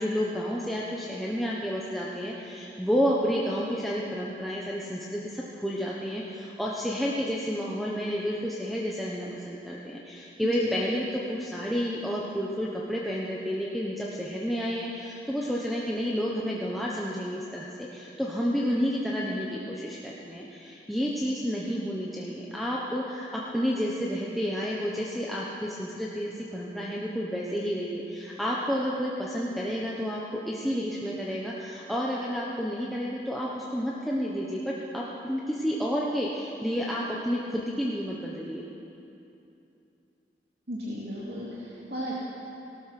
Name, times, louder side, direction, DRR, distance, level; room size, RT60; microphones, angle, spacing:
voice 1, 0.0-30.2 30.4-38.6, equal, ahead, -5 dB, 1.0 m, -30 dB
voice 2, 40.7-42.2, equal, 70° right, -7 dB, 2.5 m, -35 dB
18.0 x 13.0 x 6.0 m, 2.8 s
head